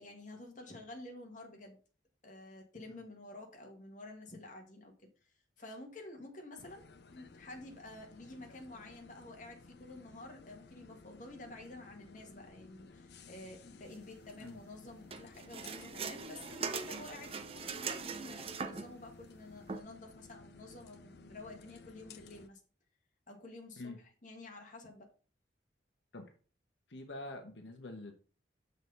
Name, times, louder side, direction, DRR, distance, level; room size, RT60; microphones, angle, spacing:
voice 1, 0.0-1.8 2.2-6.9 7.1-22.6 23.3-23.9 24.2-25.1, left 2 dB, 45° left, 1 dB, 1.6 m, -50 dB
sound 1, 6.6-22.5, left 4 dB, 65° left, 0.6 m, -57 dB
sound 2, 15.1-19.0 19.7-19.8, right 5 dB, 30° right, 0.6 m, -41 dB
voice 2, 26.9-28.1, left 2 dB, 85° left, 4 dB, 1.1 m, -45 dB
6.3 x 4.2 x 5.4 m, 0.38 s
head